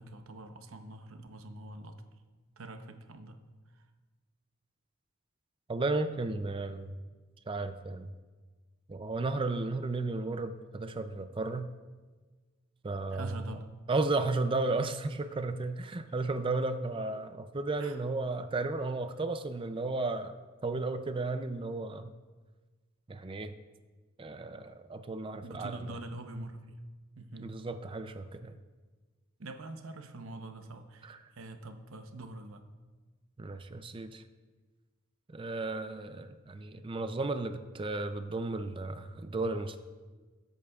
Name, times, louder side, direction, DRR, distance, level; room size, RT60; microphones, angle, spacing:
voice 1, 0.0-2.0 2.6-3.4 3.7-3.8 13.1-13.7 16.1-16.2 17.8-18.1 25.4-26.8 27.2-27.5 29.4-32.6, right 2 dB, 80° right, 7 dB, 0.9 m, -44 dB
voice 2, 5.7-6.9 7.5-8.1 8.9-11.7 12.8-13.3 13.9-20.3 20.6-22.1 23.1-23.6 24.2-25.8 27.4-28.5 31.0-31.2 33.4-34.2 35.3-39.8, right 3 dB, 25° right, 9 dB, 0.4 m, -34 dB
20.5 x 8.2 x 2.4 m, 1.3 s
head